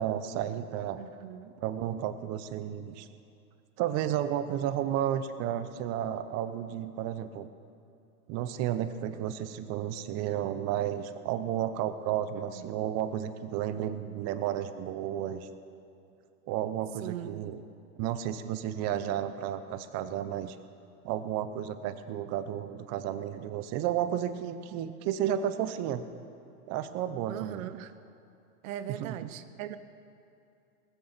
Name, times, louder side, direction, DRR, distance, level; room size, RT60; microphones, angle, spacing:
voice 1, 0.0-1.0 1.6-3.1 3.8-7.5 8.3-15.5 16.5-17.6 18.0-20.6 21.0-26.0 26.7-27.6 28.9-29.3, right 10 dB, 35° right, 10 dB, 0.8 m, -32 dB
voice 2, 1.0-1.5 12.5-12.7 17.0-17.4 27.3-27.9 28.6-29.8, right 11 dB, 65° right, 12 dB, 0.9 m, -39 dB
19.5 x 7.2 x 6.8 m, 2.7 s
supercardioid pair, 130°, 44 cm